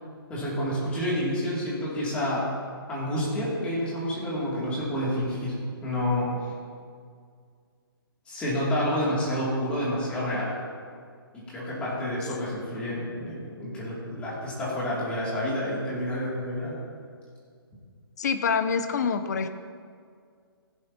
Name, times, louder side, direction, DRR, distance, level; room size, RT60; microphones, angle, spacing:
voice 1, 0.3-2.5 2.9-5.6 5.8-6.3 8.3-10.5 11.3-16.8, left 1 dB, 10° left, -7 dB, 2.6 m, -29 dB
voice 2, 18.2-19.5, left 6 dB, 45° left, 9 dB, 0.7 m, -26 dB
16.5 x 10.5 x 2.9 m, 2.1 s
hypercardioid pair, 165°, 13 cm